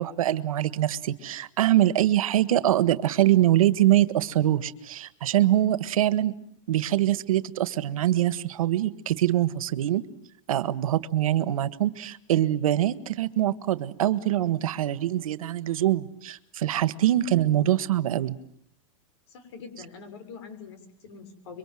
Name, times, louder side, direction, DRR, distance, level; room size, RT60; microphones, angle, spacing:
voice 1, 0.0-6.3 6.7-10.0 10.5-18.3, right 13 dB, 85° right, 16 dB, 1.6 m, -24 dB
voice 2, 19.3-21.6, left 5 dB, 50° left, 8 dB, 6.4 m, -44 dB
26.5 x 24.0 x 7.7 m, 0.67 s
supercardioid pair, 175°, 18 cm